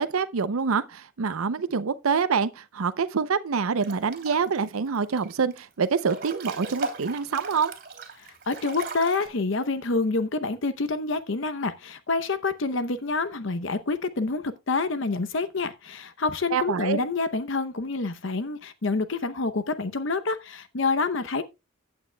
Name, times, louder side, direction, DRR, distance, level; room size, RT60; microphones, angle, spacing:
voice 1, 0.0-7.7 16.5-17.0, right 5 dB, 85° right, 0.6 m, -26 dB
Breathing / Bathtub (filling or washing) / Splash splatter, 3.8-4.6 4.9-5.6 6.0-9.3, right 3 dB, 45° right, 2.9 m, -37 dB
voice 2, 8.2-21.4, left 3 dB, 65° left, 0.7 m, -27 dB
15.0 x 8.9 x 2.2 m
head